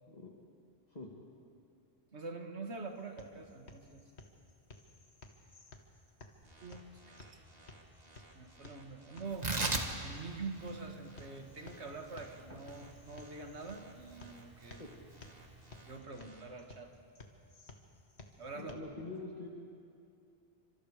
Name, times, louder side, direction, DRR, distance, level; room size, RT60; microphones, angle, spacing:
voice 1, 2.1-4.0 6.6-7.4 8.3-9.5 10.0-14.8 15.8-16.9 18.4-18.8, right 3 dB, 85° right, 4 dB, 2.2 m, -45 dB
sound 1, 2.7-18.7, left 3 dB, 75° left, 2.0 m, -57 dB
sound 2, 6.4-16.4, right 2 dB, 60° right, 2.7 m, -60 dB
Tearing, 9.3-16.0, right 2 dB, 40° right, 1.8 m, -40 dB
voice 2, 18.5-19.5, left 3 dB, 40° left, -2 dB, 2.2 m, -44 dB
30.0 x 25.5 x 5.0 m, 2.5 s
omnidirectional pair, 1.1 m